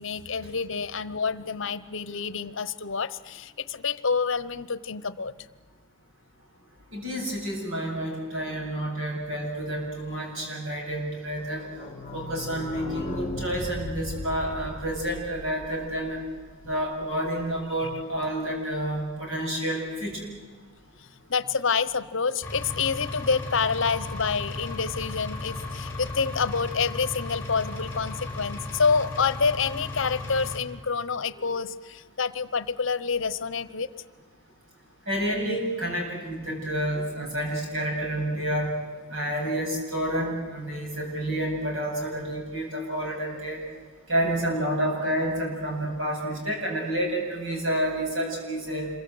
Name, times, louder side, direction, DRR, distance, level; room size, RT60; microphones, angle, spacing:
voice 1, 0.0-5.3 17.8-17.9 21.0-33.9, left 5 dB, 60° left, 15 dB, 0.9 m, -28 dB
voice 2, 6.9-11.6 12.1-16.2 16.7-20.2 35.1-38.8 39.1-43.6 44.1-48.9, right 1 dB, 70° right, 0 dB, 7.7 m, -29 dB
sound 1, 11.4-16.9 17.3-17.4 17.5-17.6 17.9-18.0, left 1 dB, 30° left, 1.4 m, -38 dB
Engine, 22.4-30.6, left 2 dB, 10° left, 4.6 m, -35 dB
26.5 x 23.0 x 8.0 m, 1.5 s
head